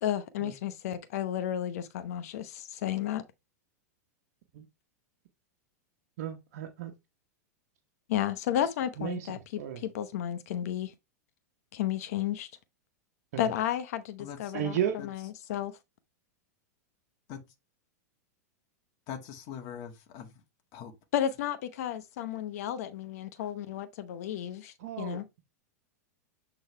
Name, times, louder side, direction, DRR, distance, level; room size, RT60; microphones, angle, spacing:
voice 1, 0.0-3.2 8.1-10.9 11.7-12.5 13.4-14.8 15.0-15.8 21.1-25.3, left 11 dB, 65° left, 0.9 m, -32 dB
voice 2, 6.2-6.9 9.0-9.3 9.6-9.9 13.3-13.5 14.5-15.0 24.8-25.4, right 10 dB, 65° right, 1.2 m, -34 dB
voice 3, 19.1-20.3 20.7-20.9, left 8 dB, 45° left, 1.8 m, -41 dB
7.8 x 4.0 x 3.3 m
hypercardioid pair, 110°, 9 cm